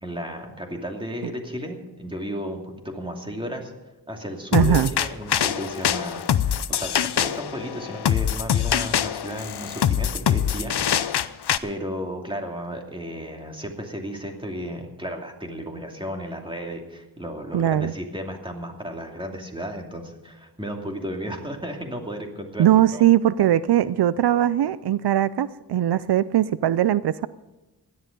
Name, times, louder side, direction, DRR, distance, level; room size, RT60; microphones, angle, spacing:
voice 1, 0.0-3.7 4.1-11.3 11.6-23.0, equal, 15° right, 2 dB, 2.7 m, -34 dB
sound 1, 4.5-11.6, left 9 dB, 85° left, 0.7 m, -24 dB
voice 2, 4.5-4.9 17.5-17.9 22.6-27.3, right 11 dB, 80° right, 17 dB, 0.5 m, -20 dB
17.0 x 11.5 x 5.3 m, 1.1 s
wide cardioid pair, 80°, 39 cm